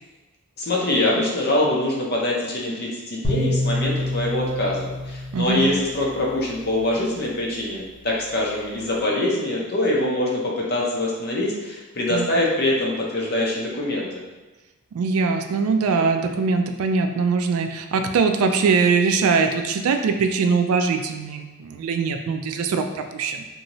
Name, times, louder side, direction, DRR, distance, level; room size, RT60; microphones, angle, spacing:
voice 1, 0.6-14.2, left 1 dB, 45° left, -3 dB, 0.6 m, -24 dB
sound 1, 3.2-6.5, left 1 dB, 20° left, 0.9 m, -27 dB
voice 2, 5.3-5.7 12.1-12.3 14.9-23.4, right 4 dB, 75° right, 7 dB, 0.3 m, -22 dB
2.7 x 2.6 x 3.0 m, 1.1 s
head